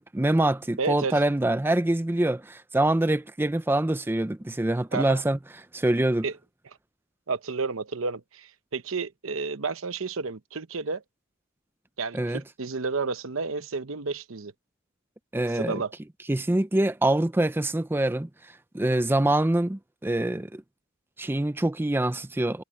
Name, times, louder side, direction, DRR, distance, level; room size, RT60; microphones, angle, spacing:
voice 1, 0.0-5.4 5.7-6.3 12.1-12.4 15.3-15.8 16.3-20.6 21.2-22.6, right 1 dB, 10° right, 0.5 m, -25 dB
voice 2, 0.8-1.1 4.9-5.2 6.2-6.3 7.3-11.0 12.0-14.5 15.5-15.9, right 4 dB, 80° right, 0.9 m, -31 dB
head